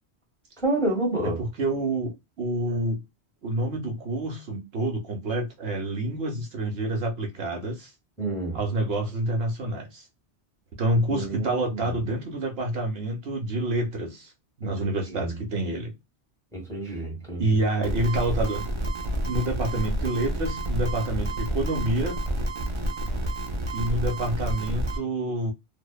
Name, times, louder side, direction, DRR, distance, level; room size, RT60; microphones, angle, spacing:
voice 1, 0.6-1.4 8.2-8.6 11.1-11.9 15.1-15.3 16.5-17.6, right 2 dB, 5° left, 1.2 m, -29 dB
voice 2, 1.4-3.0 3.4-7.9 8.5-10.1 10.8-14.3 14.6-15.9 17.4-18.7 19.2-22.2 23.7-25.5, right 2 dB, 70° right, 0.9 m, -28 dB
sound 1, 17.8-25.0, right 1 dB, 45° right, 0.4 m, -29 dB
2.6 x 2.1 x 2.2 m
omnidirectional pair, 1.1 m